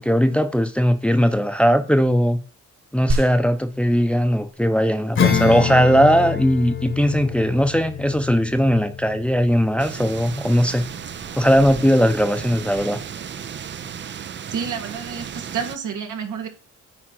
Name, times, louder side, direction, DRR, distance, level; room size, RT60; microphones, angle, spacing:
voice 1, 0.0-2.4 2.9-10.9 11.3-13.0, equal, 5° left, 0.8 m, -19 dB
sound 1, 3.1-13.1, right 2 dB, 60° right, 2.4 m, -35 dB
Acoustic guitar / Strum, 5.1-11.2, left 8 dB, 40° left, 1.2 m, -27 dB
sound 2, 9.8-15.8, right 8 dB, 40° right, 0.6 m, -34 dB
voice 2, 14.5-16.5, right 6 dB, 80° right, 1.6 m, -29 dB
9.5 x 3.8 x 6.0 m
cardioid pair, 90°, 30 cm